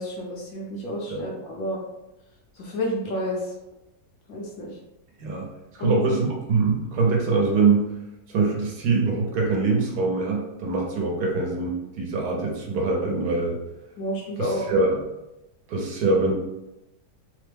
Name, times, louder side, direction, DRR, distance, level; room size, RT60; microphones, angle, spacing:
voice 1, 0.0-1.8 2.6-3.5 4.3-4.8 5.8-6.0 14.0-14.6, left 1 dB, 65° left, -1 dB, 1.0 m, -30 dB
voice 2, 5.7-7.9 8.3-13.6 14.4-15.0 15.7-16.3, right 4 dB, 70° right, -1 dB, 1.2 m, -23 dB
3.2 x 2.1 x 3.4 m, 0.92 s
omnidirectional pair, 1.8 m